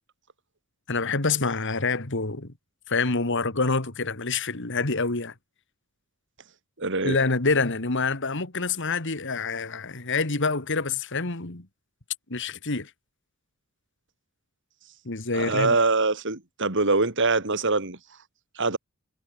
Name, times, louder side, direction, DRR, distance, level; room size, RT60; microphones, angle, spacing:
voice 1, 0.9-2.5 2.9-5.3 7.0-11.7 12.3-12.9 15.1-15.8, left 3 dB, 55° left, 2.2 m, -26 dB
voice 2, 6.8-7.2 15.3-18.0 18.6-18.8, right 3 dB, 55° right, 2.9 m, -24 dB
head